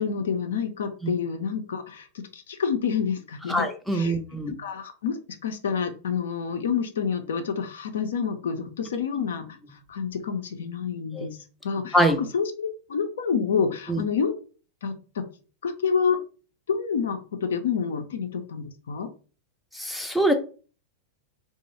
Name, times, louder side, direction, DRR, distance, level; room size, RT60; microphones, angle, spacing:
voice 1, 0.0-3.7 3.9-4.2 4.5-9.5 9.9-11.4 11.6-12.0 12.3-14.3 14.8-15.2 15.6-16.2 16.7-19.1, left 6 dB, 65° left, 6 dB, 0.5 m, -28 dB
voice 2, 3.5-4.5 11.1-11.3 11.9-12.2 13.9-14.0 19.7-20.3, right 1 dB, ahead, 4 dB, 0.5 m, -24 dB
3.0 x 2.0 x 4.0 m, 0.37 s
figure-of-eight pair, 90°, 0 cm